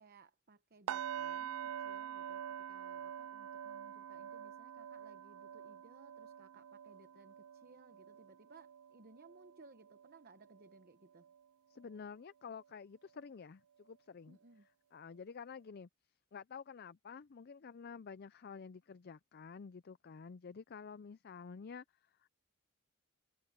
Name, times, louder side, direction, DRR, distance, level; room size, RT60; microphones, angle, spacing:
voice 1, 0.0-11.3 14.3-14.7, right 3 dB, 45° right, 0.9 m, -62 dB
sound 1, 0.9-10.8 11.1-11.4 11.9-12.0, right 9 dB, 90° right, 0.3 m, -46 dB
voice 2, 11.7-14.4 14.9-15.9 16.3-22.3, left 5 dB, 45° left, 0.4 m, -50 dB
head